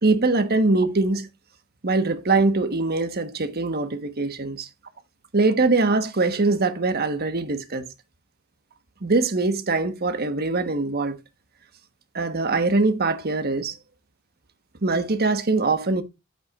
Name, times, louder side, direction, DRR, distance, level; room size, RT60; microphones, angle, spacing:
voice 1, 0.0-1.3 1.8-4.7 5.3-7.9 9.0-11.2 12.1-13.7 14.8-16.0, right 3 dB, 45° right, 1.2 m, -22 dB
9.6 x 8.0 x 2.4 m
head